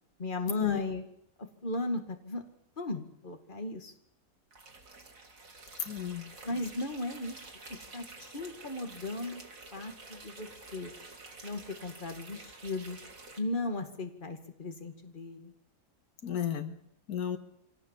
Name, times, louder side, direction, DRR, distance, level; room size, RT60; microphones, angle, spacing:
voice 1, 0.2-1.0 1.4-2.4 2.8-3.9 6.4-7.4 7.7-9.4 9.7-10.9 11.4-13.0 13.4-15.5, left 2 dB, 35° left, 6 dB, 2.2 m, -36 dB
sound 1, 4.5-13.4, right 3 dB, 60° right, 2.9 m, -50 dB
voice 2, 5.8-6.3 16.2-16.8 17.1-17.4, left 9 dB, 90° left, 9 dB, 2.0 m, -33 dB
24.5 x 17.5 x 7.4 m, 0.77 s
omnidirectional pair, 1.6 m